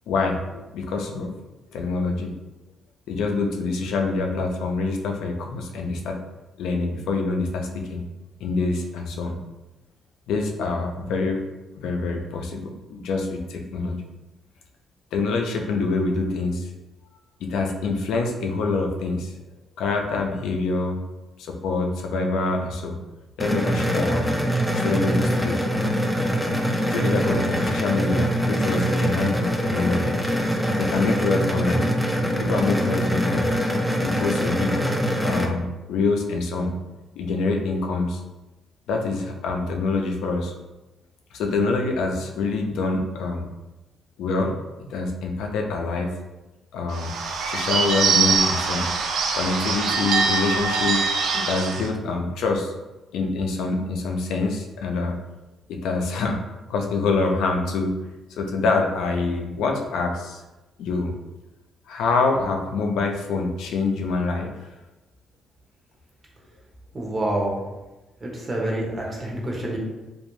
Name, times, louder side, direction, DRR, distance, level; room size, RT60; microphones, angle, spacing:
voice 1, 0.1-1.3 1.7-2.3 3.1-6.2 6.6-8.0 8.4-9.4 10.3-11.4 11.7-13.9 15.1-16.7 17.5-19.3 19.8-21.0 21.4-23.0 23.4-24.4 24.7-25.6 26.9-30.2 30.8-31.9 32.4-33.5 34.0-36.7 37.2-38.2 38.9-40.5 41.3-43.5 44.2-44.6 44.9-46.1 46.7-47.1 47.4-48.9 49.3-51.1 51.3-52.7 53.1-55.1 55.7-57.9 58.4-60.4 60.8-61.1 61.9-64.5, left 3 dB, 85° left, 2 dB, 0.3 m, -25 dB
sound 1, 23.4-35.5, equal, ahead, 0.3 m, -24 dB
Bird / Bell, 46.9-51.9, right 5 dB, 75° right, 0.3 m, -23 dB
voice 2, 66.9-67.6 68.2-69.8, right 1 dB, 35° right, -2 dB, 0.8 m, -27 dB
2.4 x 2.1 x 3.0 m, 1.1 s
cardioid pair, 90°, 0 cm